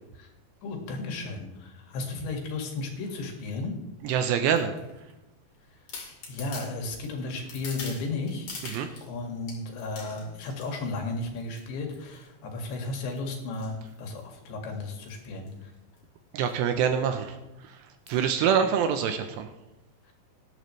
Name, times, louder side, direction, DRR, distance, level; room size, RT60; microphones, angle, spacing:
voice 1, 0.6-3.7 5.7-5.8 6.3-8.5 9.0-15.7 20.0-20.1, left 3 dB, 70° left, 2 dB, 4.2 m, -34 dB
sound 1, 3.0-3.3 4.1-5.1 5.5-5.6 5.9-9.1 9.5-10.9 11.4-11.6 11.9-12.3 12.7-14.5 15.0-15.2 15.5-15.6 15.8-16.0 16.4-16.6 17.0-17.1 18.1-18.3 18.9-19.0, left 4 dB, 45° left, 3.3 m, -44 dB
voice 2, 4.0-4.8 8.6-8.9 16.3-17.4 17.7-17.8 18.1-19.5, right 7 dB, 80° right, 7 dB, 2.7 m, -25 dB
18.5 x 11.0 x 3.2 m, 0.98 s
omnidirectional pair, 5.4 m